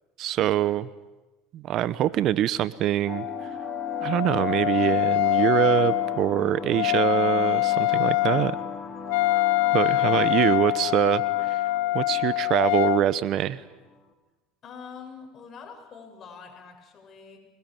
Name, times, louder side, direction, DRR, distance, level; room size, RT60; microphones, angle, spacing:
voice 1, 0.2-0.8 1.5-3.2 4.0-8.6 9.7-11.2 11.5-11.6 11.9-13.6, right 12 dB, 55° right, 17 dB, 0.9 m, -24 dB
Wind instrument woodwind instrument, 3.0-13.0, left 18 dB, 75° left, 1.0 m, -25 dB
sound 1, 3.1-14.1, left 3 dB, 25° left, 3.8 m, -39 dB
voice 2, 6.8-7.4 9.6-10.1 14.6-17.4, left 5 dB, 40° left, 3 dB, 7.4 m, -46 dB
25.0 x 21.5 x 9.1 m, 1.1 s
supercardioid pair, 95°, 0 cm